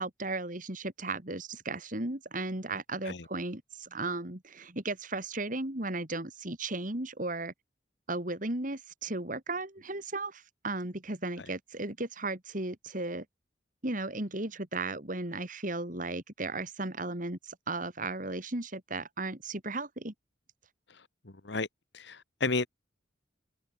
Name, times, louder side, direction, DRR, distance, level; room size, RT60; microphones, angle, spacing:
voice 1, 0.0-7.5 8.1-13.2 13.8-20.1, right 2 dB, 45° right, 3.0 m, -35 dB
voice 2, 21.9-22.7, left 3 dB, 65° left, 1.5 m, -31 dB
head